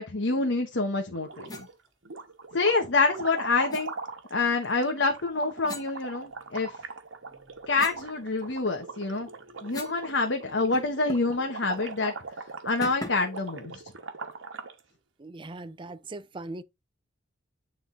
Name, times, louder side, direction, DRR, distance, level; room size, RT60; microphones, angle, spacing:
voice 1, 0.0-1.7 2.5-3.9 4.3-6.7 7.7-9.3 9.6-12.1 12.6-13.8, left 3 dB, 70° left, 1.2 m, -27 dB
sound 1, 1.1-1.7 2.1-14.8, right 4 dB, 80° right, 1.3 m, -41 dB
sound 2, 1.5-1.7 3.7-3.9 5.6-6.7 7.2-10.1 10.3-10.4 10.7-11.4 11.7-11.9 12.8-13.4, left 2 dB, 20° left, 1.4 m, -42 dB
voice 2, 15.2-16.6, right 2 dB, 25° right, 0.5 m, -40 dB
9.6 x 3.8 x 3.9 m
head